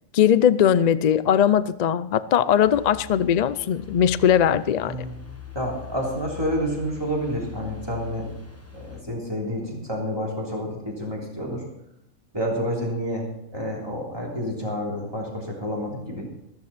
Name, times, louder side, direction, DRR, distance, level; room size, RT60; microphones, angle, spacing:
voice 1, 0.1-5.0, left 9 dB, 70° left, 16 dB, 0.4 m, -20 dB
sound 1, 2.6-9.0, left 10 dB, 10° left, 1.1 m, -42 dB
voice 2, 5.5-8.3 8.7-11.6 12.3-13.3 13.5-16.3, equal, 20° right, -2 dB, 3.4 m, -29 dB
14.5 x 14.0 x 4.2 m, 0.79 s
omnidirectional pair, 1.4 m